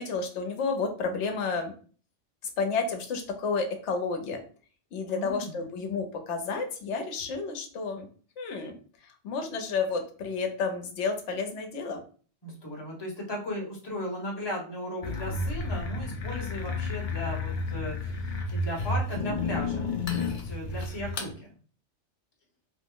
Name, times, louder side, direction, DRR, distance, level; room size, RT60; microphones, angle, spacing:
voice 1, 0.0-1.7 2.6-4.4 4.9-8.1 8.4-8.7 9.2-12.0, left 4 dB, 75° left, 5 dB, 1.0 m, -31 dB
voice 2, 5.1-5.6 12.4-21.6, equal, 25° left, -1 dB, 0.8 m, -36 dB
sound 1, 15.0-21.3, left 3 dB, 55° left, 0.6 m, -31 dB
2.9 x 2.0 x 3.6 m, 0.41 s
omnidirectional pair, 1.2 m